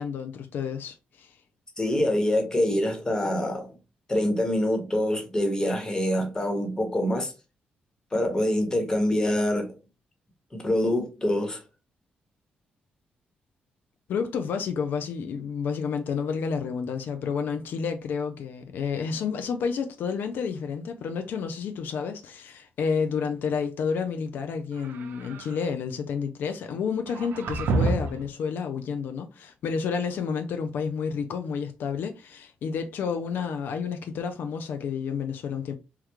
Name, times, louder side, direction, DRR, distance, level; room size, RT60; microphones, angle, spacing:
voice 1, 0.0-1.4 14.1-35.8, left 6 dB, 80° left, 0.4 m, -30 dB
voice 2, 1.8-3.7 4.1-7.3 8.1-9.8 10.5-11.6, left 1 dB, 20° left, 1.1 m, -25 dB
sound 1, 24.7-25.6 27.1-28.3, right 3 dB, 80° right, 0.5 m, -28 dB
3.5 x 2.3 x 2.9 m
cardioid pair, 100°, 3 cm